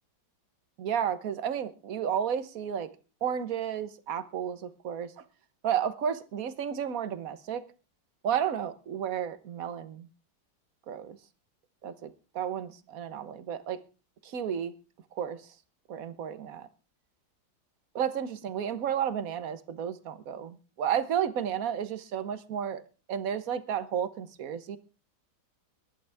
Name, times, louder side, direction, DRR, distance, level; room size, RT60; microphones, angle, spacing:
voice 1, 0.8-2.9 3.2-5.1 5.6-7.6 8.2-10.1 10.9-11.2 11.8-13.8 14.2-14.7 15.1-15.4 15.9-16.7 17.9-22.8 23.1-24.8, right 8 dB, 50° right, 12 dB, 1.5 m, -32 dB
23.0 x 11.5 x 3.6 m, 0.34 s
omnidirectional pair, 2.1 m